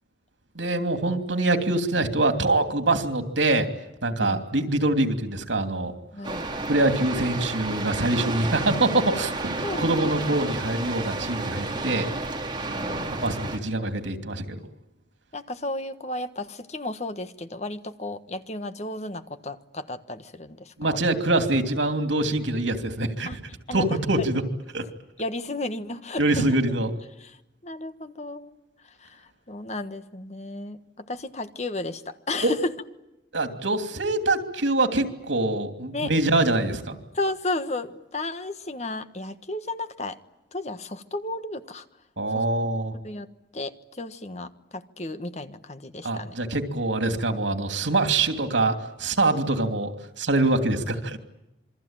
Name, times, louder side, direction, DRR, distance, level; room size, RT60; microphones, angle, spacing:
voice 1, 0.5-3.7 4.0-5.9 6.7-12.1 13.2-14.6 20.8-23.4 23.7-24.4 24.7-24.8 26.2-26.9 32.4-32.5 33.3-37.0 42.2-42.9 46.0-51.2, right 2 dB, 90° right, 7 dB, 2.9 m, -24 dB
voice 2, 6.1-6.5 9.6-9.9 12.7-13.3 15.3-21.0 23.3-23.4 23.7-24.3 25.2-26.5 27.2-27.4 27.6-28.6 28.8-32.7 35.9-36.1 37.1-40.2 40.5-41.8 42.3-42.4 43.0-43.3 43.5-46.3, left 2 dB, 35° left, 10 dB, 1.4 m, -33 dB
sound 1, 6.2-13.6, right 2 dB, 25° right, 3.2 m, -31 dB
27.5 x 23.0 x 9.0 m, 0.93 s
head